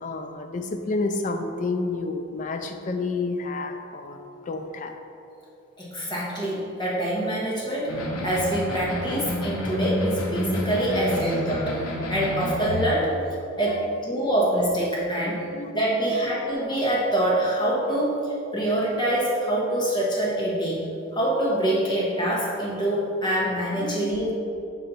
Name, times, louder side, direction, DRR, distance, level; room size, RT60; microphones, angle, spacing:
voice 1, 0.0-4.2 4.5-5.0 8.8-9.4 11.2-11.3 11.8-11.9 13.1-13.2 13.7-14.0 15.5-15.7 23.8-24.1, left 3 dB, 35° left, 5 dB, 0.3 m, -30 dB
voice 2, 5.8-13.1 13.6-15.4 15.7-24.3, right 1 dB, 20° left, -6 dB, 1.1 m, -25 dB
sound 1, 7.9-12.9, left 1 dB, 70° left, 0.8 m, -29 dB
5.5 x 4.1 x 4.1 m, 2.6 s
head